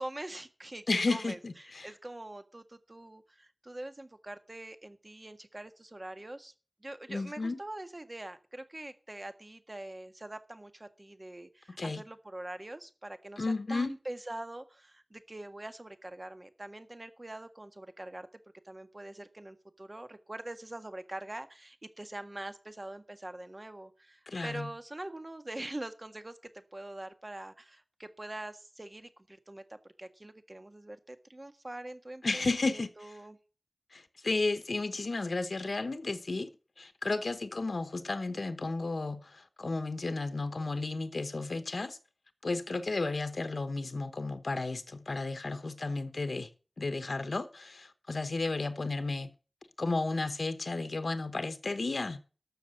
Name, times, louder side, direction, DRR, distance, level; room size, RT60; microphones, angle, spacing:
voice 1, 0.0-6.5 6.8-18.3 18.6-33.4, right 1 dB, 40° right, 1.6 m, -44 dB
voice 2, 0.9-1.9 7.1-7.6 11.8-12.0 13.4-13.9 24.3-24.7 32.2-33.1 33.9-36.5 36.8-42.0 42.4-46.5 46.8-49.3 49.8-52.2, left 3 dB, 90° left, 0.9 m, -33 dB
13.0 x 6.5 x 7.7 m
wide cardioid pair, 60°, 0 cm